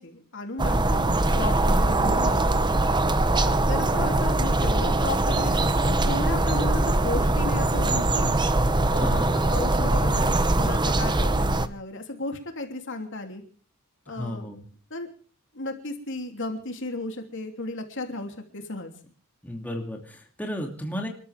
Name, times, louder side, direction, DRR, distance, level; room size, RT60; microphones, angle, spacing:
voice 1, 0.0-2.7 3.3-8.4 8.9-13.4 14.1-14.5 14.9-15.1 15.5-18.9, left 2 dB, 60° left, 4 dB, 3.1 m, -34 dB
sound 1, 0.6-11.7, right 2 dB, 20° right, 0.9 m, -22 dB
voice 2, 0.7-1.2 9.0-9.4 14.1-14.6 19.4-21.1, equal, 10° left, 1 dB, 2.8 m, -33 dB
28.5 x 13.5 x 3.6 m, 0.41 s
head